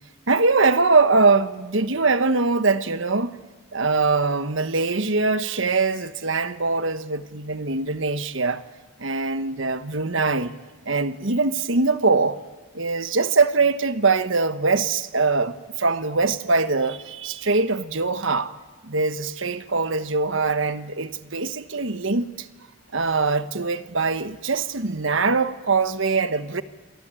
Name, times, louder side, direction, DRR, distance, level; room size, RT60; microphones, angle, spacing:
voice 1, 0.3-3.3 3.7-8.6 9.0-10.5 10.8-12.4 12.7-18.5 18.8-22.5 22.9-26.6, right 3 dB, 65° right, 1.3 m, -22 dB
28.5 x 23.0 x 9.1 m
head